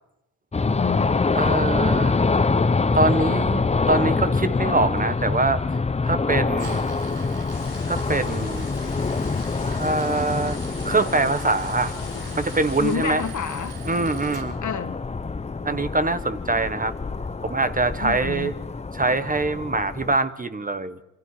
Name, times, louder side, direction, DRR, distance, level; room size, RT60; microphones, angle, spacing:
sound 1, 0.5-20.2, left 4 dB, 20° left, 0.8 m, -25 dB
voice 1, 0.6-1.2 12.8-13.8 14.6-15.0 18.0-18.5, left 7 dB, 50° left, 1.7 m, -29 dB
voice 2, 1.3-2.2 2.9-5.6 6.1-6.9 7.9-8.7 9.6-10.6 10.8-11.9 12.4-13.2 13.9-14.5 15.6-16.9 17.4-18.5 18.9-21.0, right 3 dB, 25° right, 1.2 m, -24 dB
Tools, 6.5-14.4, right 6 dB, 80° right, 4.3 m, -43 dB
sound 2, 7.5-13.0, left 10 dB, 90° left, 1.5 m, -41 dB
27.5 x 24.0 x 4.9 m
cardioid pair, 80°, 36 cm